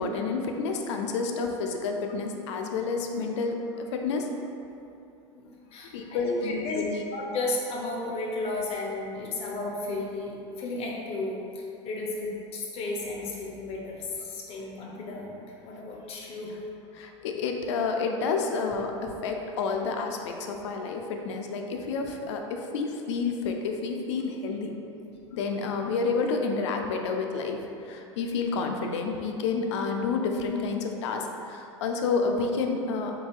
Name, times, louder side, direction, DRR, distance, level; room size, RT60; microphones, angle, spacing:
voice 1, 0.0-4.3 5.9-7.0 14.5-14.6 16.9-24.7 25.3-27.6 27.9-33.1, left 4 dB, 70° left, 3 dB, 0.4 m, -29 dB
voice 2, 5.3-16.5 25.2-25.6, left 2 dB, 40° left, -2 dB, 0.8 m, -34 dB
4.1 x 3.7 x 2.4 m, 2.7 s
hypercardioid pair, 85°, 16 cm